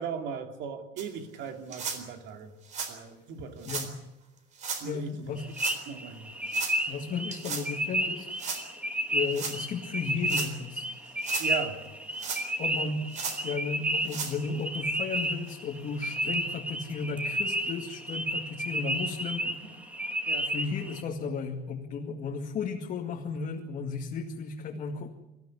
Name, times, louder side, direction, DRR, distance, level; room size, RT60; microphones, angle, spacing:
voice 1, 0.0-2.5 2.9-3.7 4.8-5.2 5.9-6.3 11.4-11.8 19.4-19.7 20.3-20.5, right 6 dB, 70° right, 5 dB, 3.2 m, -38 dB
sound 1, 1.0-1.1 1.7-2.0 2.6-2.9 3.6-3.9 4.6-4.8 5.5-5.8 6.5-6.8 7.3-7.7 8.4-8.6 9.3-9.6 10.2-10.5 11.1-11.5 12.2-12.7 13.1-13.4 14.0-14.3 15.0-15.1 15.5-15.6 16.3-16.4, right 5 dB, 40° right, 4.0 m, -35 dB
voice 2, 3.7-4.0 4.8-5.5 6.9-8.4 9.1-10.9 12.6-19.8 20.4-25.1, left 5 dB, 40° left, 0 dB, 2.1 m, -34 dB
sound 2, 5.4-21.0, right 1 dB, 5° right, 1.8 m, -32 dB
26.0 x 15.0 x 9.9 m, 0.92 s
cardioid pair, 180°, 19 cm